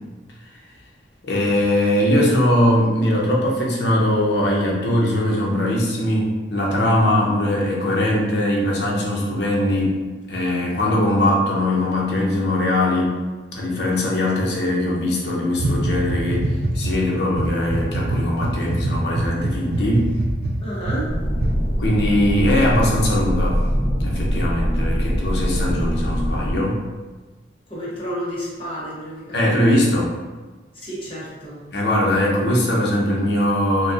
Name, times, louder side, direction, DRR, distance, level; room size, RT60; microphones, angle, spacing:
voice 1, 1.2-10.0 10.3-13.2 13.5-20.1 21.8-23.6 24.0-26.8 29.3-30.1 31.7-33.9, left 1 dB, 70° left, -3 dB, 0.8 m, -20 dB
sound 1, 15.6-17.0 17.3-21.0 21.4-21.5, right 1 dB, 65° right, 0.4 m, -23 dB
voice 2, 20.6-21.1 27.7-29.6 30.8-31.6, equal, 30° left, -7 dB, 0.9 m, -31 dB
sound 2, 21.1-26.5, equal, 50° left, 1.2 m, -22 dB
4.0 x 2.2 x 2.5 m, 1.3 s
head